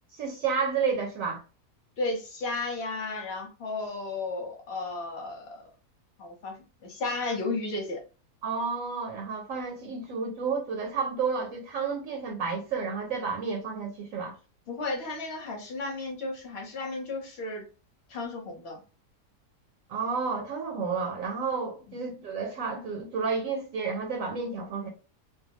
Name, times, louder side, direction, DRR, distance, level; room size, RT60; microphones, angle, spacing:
voice 1, 0.1-1.4 8.4-14.3 19.9-24.9, right 5 dB, 70° right, 0.8 m, -31 dB
voice 2, 2.0-5.6 6.2-6.6 6.8-8.0 14.7-17.7 18.1-18.8, left 3 dB, 50° left, 0.9 m, -33 dB
2.6 x 2.2 x 2.8 m
omnidirectional pair, 1.7 m